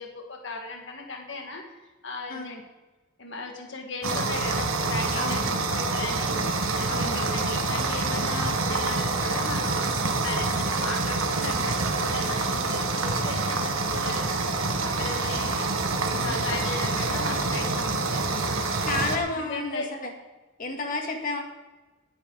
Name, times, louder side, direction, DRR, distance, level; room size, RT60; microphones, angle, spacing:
voice 1, 0.0-1.6 2.0-2.6 3.2-5.4 5.7-6.4 6.8-14.4 14.8-15.7 16.2-18.8 19.3-19.9, left 3 dB, 60° left, 1 dB, 1.7 m, -37 dB
sound 1, 4.0-19.2, right 3 dB, 85° right, 1.4 m, -27 dB
voice 2, 5.2-5.6 6.9-7.2 16.1-16.4 18.8-20.1 20.6-21.4, left 3 dB, 45° left, 2 dB, 2.0 m, -31 dB
18.5 x 9.7 x 4.0 m, 1.2 s
head